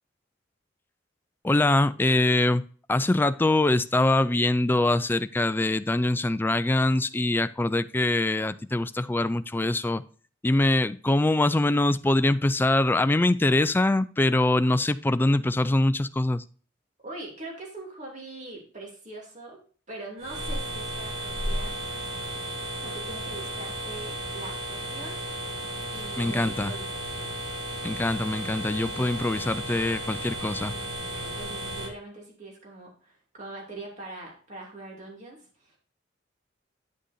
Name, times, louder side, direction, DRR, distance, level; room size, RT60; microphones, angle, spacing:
voice 1, 1.4-2.6 2.9-10.0 10.4-16.4 26.2-26.7 27.8-30.7, left 2 dB, 10° left, 0.3 m, -23 dB
voice 2, 17.0-19.6 19.9-21.8 22.8-25.2 25.9-27.4 31.2-35.8, right 2 dB, 40° right, 2.7 m, -42 dB
sound 1, 20.2-31.9, right 1 dB, 80° right, 1.6 m, -34 dB
9.6 x 6.4 x 2.6 m
head